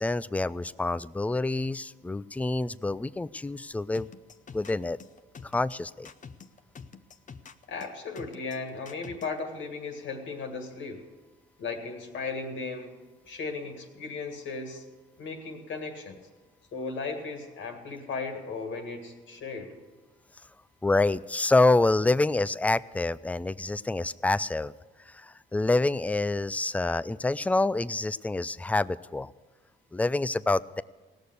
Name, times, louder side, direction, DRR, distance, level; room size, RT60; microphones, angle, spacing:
voice 1, 0.0-4.1 4.5-5.0 5.5-6.1 20.8-24.7 25.1-29.3 29.9-30.8, left 2 dB, 5° left, 18 dB, 0.3 m, -27 dB
sound 1, 3.9-9.4, left 5 dB, 40° left, 0.7 m, -46 dB
voice 2, 7.7-11.1 11.6-13.0 13.3-14.8 15.2-16.2 16.7-19.8, left 4 dB, 70° left, 4 dB, 2.0 m, -36 dB
17.5 x 6.7 x 8.1 m, 1.3 s
cardioid pair, 90°, 20 cm